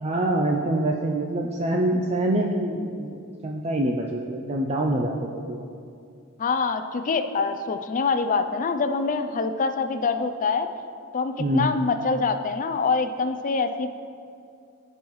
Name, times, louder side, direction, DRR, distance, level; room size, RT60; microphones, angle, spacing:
voice 1, 0.0-3.2 3.4-5.6 11.4-11.7, right 1 dB, 30° right, 0 dB, 0.5 m, -25 dB
voice 2, 6.4-10.7 11.1-13.9, left 4 dB, 35° left, 9 dB, 0.4 m, -25 dB
14.5 x 5.5 x 3.1 m, 2.4 s
head